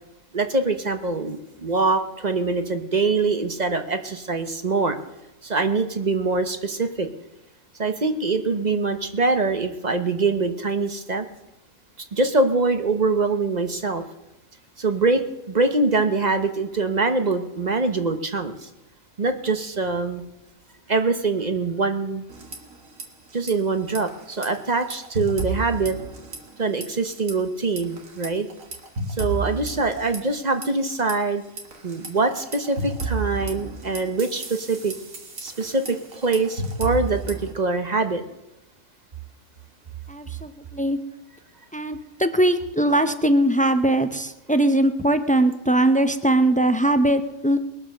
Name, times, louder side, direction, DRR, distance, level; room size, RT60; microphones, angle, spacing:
voice 1, 0.3-5.0 5.4-7.1 7.8-11.3 12.1-14.0 14.8-15.2 15.5-18.7 19.2-20.2 20.9-22.2 23.3-26.0 26.6-28.5 29.2-31.4 31.8-34.9 35.4-38.2, right 3 dB, 35° right, 8 dB, 1.0 m, -24 dB
sound 1, 22.3-23.0 23.3-23.5 23.9-26.6 26.8-27.3 27.8-31.1 31.6-37.5, right 3 dB, 70° right, 2.3 m, -32 dB
voice 2, 40.1-41.0 41.7-47.6, right 1 dB, 10° left, 9 dB, 0.4 m, -20 dB
21.0 x 7.4 x 6.5 m, 0.97 s
omnidirectional pair, 1.5 m